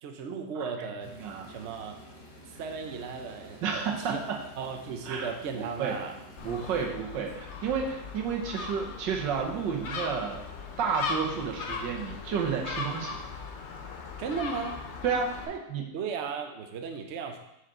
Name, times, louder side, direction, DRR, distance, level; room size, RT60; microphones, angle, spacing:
voice 1, 0.0-1.1 1.5-2.0 2.6-3.6 4.0-4.3 4.6-6.2 14.2-14.9 15.5-15.6 15.9-17.4, right 5 dB, 60° right, 4 dB, 0.7 m, -35 dB
sound 1, 1.0-6.8, equal, 40° left, 1.8 m, -50 dB
voice 2, 1.2-1.5 3.6-4.4 5.1-6.0 6.4-10.4 10.8-13.2 15.0-15.9, right 6 dB, 75° right, 1 dB, 1.6 m, -31 dB
Gull seagull, 6.4-15.4, left 4 dB, 55° left, 0.8 m, -38 dB
6.4 x 4.9 x 4.3 m, 0.85 s
omnidirectional pair, 2.0 m